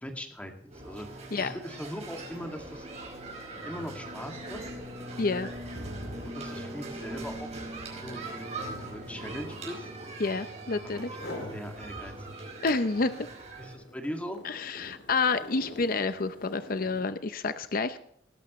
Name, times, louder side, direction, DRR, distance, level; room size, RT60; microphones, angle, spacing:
voice 1, 0.0-2.9 3.6-4.6 6.2-7.5 7.9-9.9 11.3-12.5 13.1-13.2 13.6-14.4, equal, 10° left, 3 dB, 2.2 m, -40 dB
sound 1, 0.7-13.7, right 2 dB, 40° right, 5.3 m, -41 dB
sound 2, 1.6-1.8 2.1-10.6 11.0-11.6 12.1-17.2, left 1 dB, 80° left, 2.6 m, -47 dB
sound 3, 3.5-13.7, right 1 dB, 85° right, 5.0 m, -49 dB
voice 2, 5.2-5.5 10.2-11.1 12.6-13.1 14.4-18.0, left 4 dB, 50° left, 11 dB, 0.7 m, -29 dB
20.0 x 12.0 x 3.1 m, 0.70 s
head